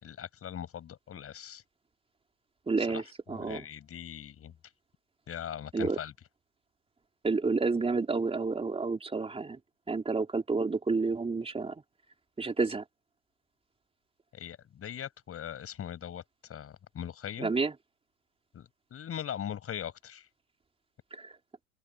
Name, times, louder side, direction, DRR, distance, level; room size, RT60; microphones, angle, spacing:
voice 1, 0.0-1.6 2.9-3.0 3.3-4.5 5.3-6.1 14.3-16.2 16.5-17.5 18.5-20.3, left 9 dB, 30° left, 6.8 m, -40 dB
voice 2, 2.7-3.6 5.7-6.0 7.2-9.6 9.9-11.8 12.4-12.8 17.4-17.7 21.1-21.3, right 4 dB, 15° right, 3.6 m, -30 dB
hypercardioid pair, 95°, 42 cm